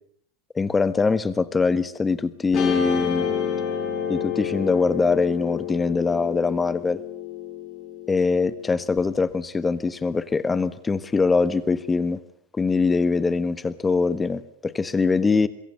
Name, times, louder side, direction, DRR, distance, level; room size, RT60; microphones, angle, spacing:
voice 1, 0.5-3.3 4.1-7.0 8.1-12.2 12.5-15.5, left 4 dB, 15° left, 17 dB, 1.3 m, -23 dB
Guitar, 2.5-9.0, left 8 dB, 35° left, 5.7 m, -29 dB
26.0 x 22.0 x 6.9 m, 0.65 s
figure-of-eight pair, 90°, 0 cm